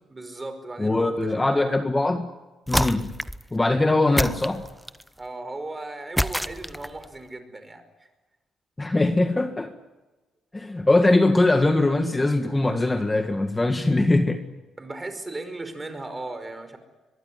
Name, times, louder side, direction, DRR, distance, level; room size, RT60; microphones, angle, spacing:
voice 1, 0.1-1.8 5.2-8.1 14.8-16.8, right 2 dB, 20° right, 9 dB, 5.3 m, -37 dB
voice 2, 0.8-2.3 2.7-3.1 3.5-4.6 8.8-9.7 10.5-14.4, left 2 dB, 15° left, 6 dB, 1.8 m, -21 dB
sound 1, 2.7-3.5 4.2-5.1 6.2-7.1, equal, ahead, 0.9 m, -26 dB
23.0 x 22.5 x 9.7 m, 1.1 s
cardioid pair, 90°, 0 cm